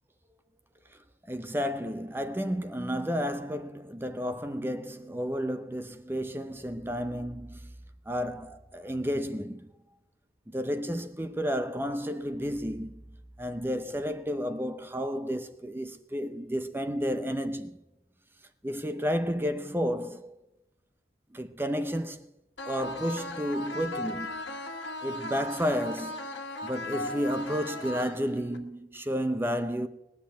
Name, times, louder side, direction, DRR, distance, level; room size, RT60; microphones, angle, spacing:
voice 1, 1.3-7.7 8.1-9.7 10.5-13.0 13.4-17.8 18.6-20.4 21.3-22.3 22.7-24.6 25.0-29.9, equal, 15° right, 0.7 m, -32 dB
sound 1, 22.6-28.6, left 1 dB, 90° left, 1.7 m, -37 dB
19.5 x 7.2 x 9.0 m
head